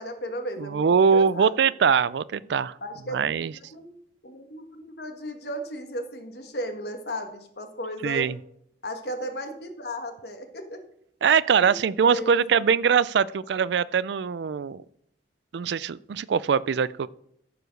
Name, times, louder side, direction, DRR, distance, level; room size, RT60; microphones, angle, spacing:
voice 1, 0.0-1.7 2.8-4.0 4.2-8.3 8.8-10.8 11.6-11.8 12.1-12.5, equal, 60° left, 6 dB, 1.5 m, -35 dB
voice 2, 0.6-2.7 3.1-3.5 8.0-8.4 11.2-14.8 15.5-17.1, right 6 dB, 70° right, 19 dB, 0.4 m, -22 dB
14.5 x 4.9 x 6.4 m, 0.72 s
head